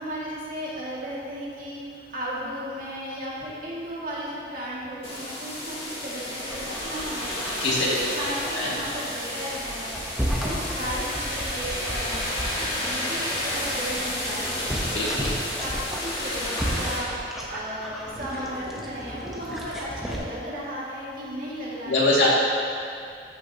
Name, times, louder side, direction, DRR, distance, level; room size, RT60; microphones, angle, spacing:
voice 1, 0.0-7.4 8.1-12.3 12.6-15.2 15.6-22.3, equal, 50° right, -7 dB, 2.0 m, -35 dB
sound 1, 5.0-17.0, left 1 dB, 30° left, 2.0 m, -31 dB
Dog, 6.4-20.2, equal, ahead, 0.9 m, -34 dB
voice 2, 14.9-15.3 21.8-22.3, left 2 dB, 75° left, -6 dB, 2.2 m, -23 dB
13.0 x 6.7 x 2.8 m, 2.4 s
head